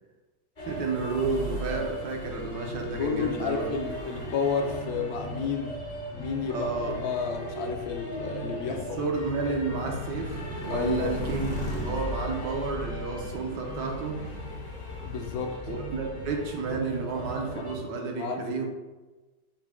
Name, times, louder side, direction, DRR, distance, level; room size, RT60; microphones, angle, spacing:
sound 1, 0.6-17.8, equal, 45° left, 0.5 m, -36 dB
voice 1, 0.7-3.7 6.5-7.0 8.7-11.5 11.8-14.2 15.7-18.6, right 4 dB, 75° right, 1 dB, 1.4 m, -31 dB
voice 2, 2.8-5.8 6.1-8.8 9.5-9.6 10.7-11.1 15.0-15.6 17.5-17.7 18.0-18.6, left 6 dB, 70° left, 3 dB, 0.9 m, -31 dB
5.7 x 2.2 x 3.5 m, 1.2 s
omnidirectional pair, 2.0 m